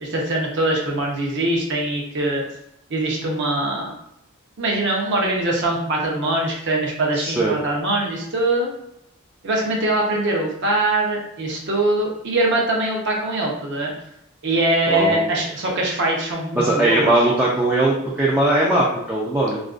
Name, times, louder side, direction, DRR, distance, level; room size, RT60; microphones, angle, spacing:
voice 1, 0.0-2.4 2.9-3.9 4.6-8.7 9.4-13.9 14.4-17.2, right 2 dB, 55° right, -1 dB, 0.6 m, -22 dB
voice 2, 7.1-7.6 14.9-15.3 16.5-19.6, right 2 dB, 10° right, -6 dB, 0.3 m, -19 dB
2.4 x 2.2 x 2.4 m, 0.79 s
head